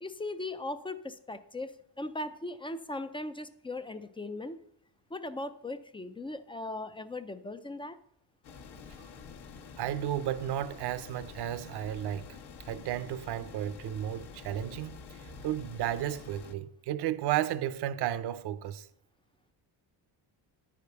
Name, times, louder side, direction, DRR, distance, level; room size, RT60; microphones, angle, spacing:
voice 1, 0.0-4.6 5.1-8.0, left 2 dB, 15° left, 0.3 m, -38 dB
sound 1, 8.4-16.5, left 5 dB, 65° left, 1.1 m, -48 dB
voice 2, 9.8-12.3 12.7-15.0 15.4-18.9, right 11 dB, 70° right, 0.7 m, -33 dB
10.0 x 5.1 x 6.7 m
cardioid pair, 140°, 42 cm